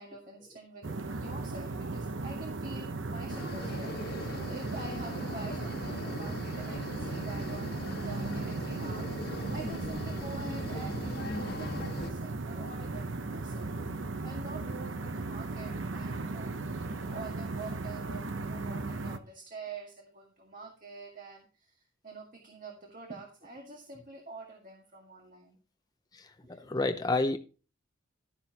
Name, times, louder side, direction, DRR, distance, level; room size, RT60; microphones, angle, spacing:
voice 1, 0.0-7.8 8.0-13.8 14.2-16.5 16.9-25.6 26.4-26.7, right 3 dB, 40° right, 1.8 m, -46 dB
sound 1, 0.8-19.2, right 3 dB, 65° right, 0.8 m, -36 dB
sound 2, 3.3-12.1, left 2 dB, 50° left, 1.4 m, -41 dB
voice 2, 26.1-27.4, left 2 dB, 20° left, 0.6 m, -30 dB
12.5 x 10.0 x 2.9 m
head